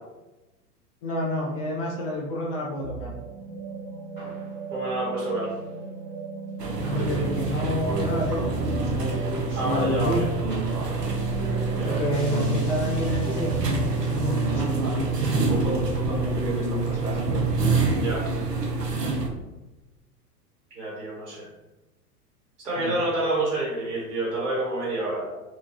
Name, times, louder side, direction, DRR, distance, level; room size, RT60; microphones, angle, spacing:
voice 1, 1.0-3.1 6.8-8.5 8.9-10.2 11.8-17.1 22.8-22.9, left 1 dB, 35° left, -3 dB, 0.8 m, -29 dB
sound 1, 2.8-17.3, right 4 dB, 10° left, 0.3 m, -38 dB
voice 2, 4.7-5.5 9.5-10.3 11.8-12.2 18.0-18.2 20.7-21.5 22.6-25.3, right 2 dB, 70° right, -5 dB, 1.3 m, -28 dB
sound 2, 6.6-19.3, right 3 dB, 90° right, 0.6 m, -26 dB
4.6 x 2.3 x 2.8 m, 1.1 s
figure-of-eight pair, 100°, 47 cm